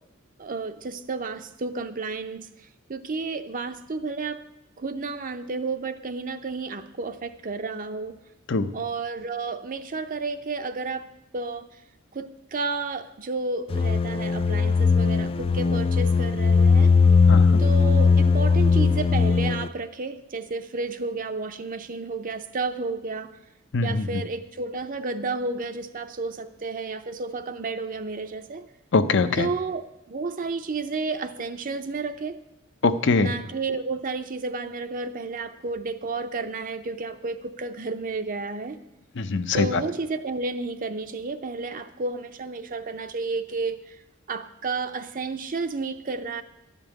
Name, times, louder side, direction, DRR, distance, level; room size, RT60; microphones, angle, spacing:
voice 1, 0.4-2.5 2.9-4.4 4.8-8.2 8.7-11.1 11.3-11.7 12.1-16.9 17.6-23.3 23.8-28.6 29.4-32.4 33.2-38.8 39.5-44.0 44.3-46.4, right 3 dB, 40° right, 9 dB, 0.6 m, -31 dB
sound 1, 13.7-19.7, left 4 dB, 25° left, 0.3 m, -19 dB
voice 2, 17.3-17.6 23.7-24.2 28.9-29.5 32.8-33.3 39.2-39.8, left 3 dB, 60° left, 11 dB, 0.7 m, -23 dB
12.0 x 5.3 x 8.9 m, 0.89 s
head